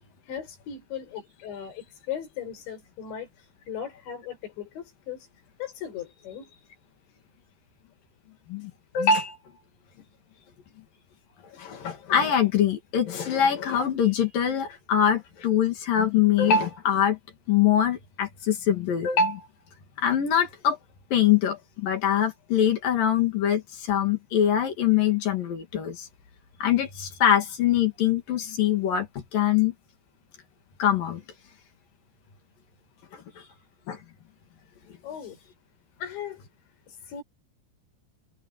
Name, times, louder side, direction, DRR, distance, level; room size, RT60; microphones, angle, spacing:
voice 1, 0.3-3.3 3.7-5.3 5.6-6.5 33.3-33.5 35.0-35.4 36.0-36.4 36.9-37.2, left 9 dB, 75° left, 7.6 m, -37 dB
voice 2, 8.5-9.4 11.5-17.2 17.5-19.5 20.0-20.8 21.1-26.1 26.6-29.7 30.8-31.2 33.9-34.0, left 8 dB, 55° left, 3.7 m, -23 dB
omnidirectional pair, 5.2 m